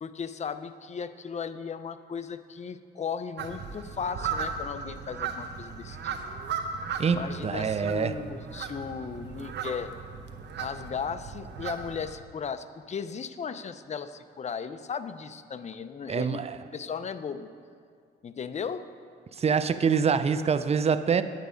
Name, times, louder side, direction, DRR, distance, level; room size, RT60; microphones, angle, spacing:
voice 1, 0.0-6.2 7.1-9.9 10.6-16.4 16.7-17.5 18.2-18.9, left 6 dB, 35° left, 0.5 m, -36 dB
sound 1, 3.4-12.1, right 6 dB, 60° right, 0.9 m, -37 dB
voice 2, 7.0-8.1 16.1-16.6 19.3-21.2, right 6 dB, 30° right, 0.5 m, -25 dB
9.3 x 9.2 x 5.1 m
cardioid pair, 90°, 20 cm